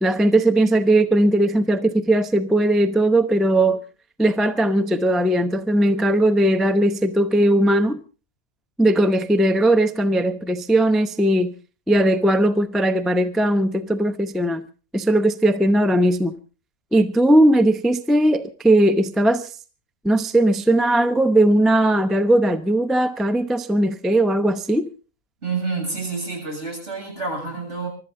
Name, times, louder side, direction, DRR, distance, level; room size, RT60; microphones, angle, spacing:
voice 1, 0.0-3.8 4.2-8.0 8.8-11.5 11.9-14.6 14.9-16.4 16.9-19.5 20.0-24.9, right 1 dB, ahead, 0.6 m, -18 dB
voice 2, 25.4-27.9, right 4 dB, 60° right, 7.8 m, -28 dB
24.5 x 12.5 x 3.8 m
omnidirectional pair, 1.4 m